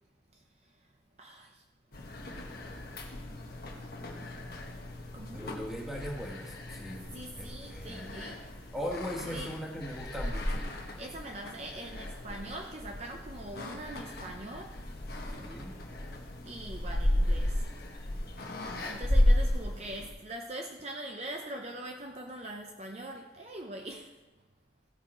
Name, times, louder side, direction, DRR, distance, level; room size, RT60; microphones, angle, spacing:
voice 1, 1.2-1.6 1.9-2.1 4.2-4.3 5.1-5.6 7.1-8.7 9.2-9.5 11.0-14.8 16.4-17.7 18.9-24.1, right 1 dB, 35° right, 3 dB, 0.6 m, -43 dB
sound 1, 1.9-20.1, left 1 dB, 55° left, 1.3 m, -34 dB
voice 2, 5.3-7.1 7.4-8.2 8.7-10.6 15.3-15.7, equal, ahead, -2 dB, 1.5 m, -39 dB
16.0 x 5.7 x 4.3 m, 1.1 s
head